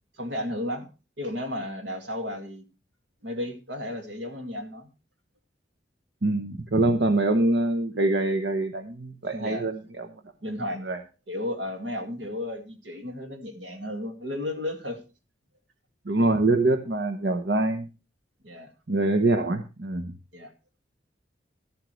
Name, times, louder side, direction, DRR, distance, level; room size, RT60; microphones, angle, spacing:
voice 1, 0.2-0.9 1.2-2.6 3.2-4.9 9.3-9.7 10.4-10.8 11.3-15.0 18.4-18.7 20.3-20.5, left 1 dB, 85° right, 5 dB, 2.1 m, -33 dB
voice 2, 6.2-10.1 10.7-11.0 16.1-17.9 18.9-20.1, right 2 dB, 65° right, 7 dB, 0.9 m, -24 dB
12.5 x 12.0 x 3.2 m, 0.32 s
head